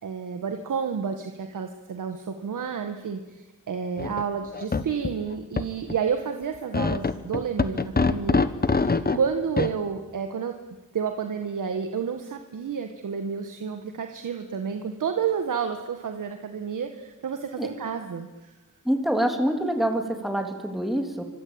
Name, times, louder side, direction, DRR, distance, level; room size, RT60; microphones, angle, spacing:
voice 1, 0.0-10.6 10.9-18.5, right 6 dB, 80° right, 6 dB, 1.9 m, -30 dB
sound 1, 4.0-4.2 4.5-5.1 5.6-5.7 5.9-6.0 6.7-9.2 9.6-9.7, left 4 dB, 30° left, 1.4 m, -23 dB
voice 2, 18.9-21.2, right 1 dB, ahead, 4 dB, 3.5 m, -26 dB
26.5 x 25.0 x 9.0 m, 1.2 s
wide cardioid pair, 100°, 31 cm